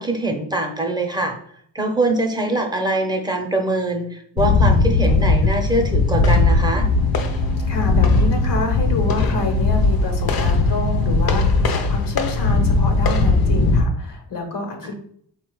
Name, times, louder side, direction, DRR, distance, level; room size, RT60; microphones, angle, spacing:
voice 1, 0.0-1.3 1.7-6.9, right 2 dB, 10° right, 2 dB, 0.6 m, -23 dB
sound 1, 4.4-13.8, left 3 dB, 60° left, 0.7 m, -18 dB
sound 2, 6.4-11.7, right 9 dB, 55° right, 0.5 m, -36 dB
voice 2, 7.7-14.9, left 2 dB, 80° left, 3 dB, 1.0 m, -28 dB
4.6 x 2.3 x 4.5 m, 0.64 s
wide cardioid pair, 125°, 41 cm